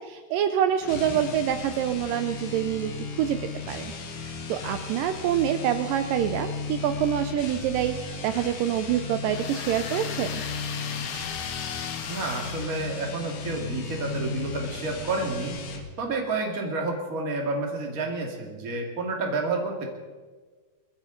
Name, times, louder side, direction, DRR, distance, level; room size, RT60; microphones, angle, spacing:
voice 1, 0.0-2.9 3.2-10.4, right 10 dB, 90° right, 9 dB, 1.9 m, -26 dB
sound 1, 0.8-15.9, left 4 dB, 55° left, 1.6 m, -35 dB
sound 2, 9.3-13.4, left 7 dB, 85° left, 1.4 m, -37 dB
voice 2, 12.1-15.6 16.0-19.9, right 3 dB, 35° right, 2 dB, 1.5 m, -30 dB
21.5 x 14.5 x 3.8 m, 1.4 s
omnidirectional pair, 4.6 m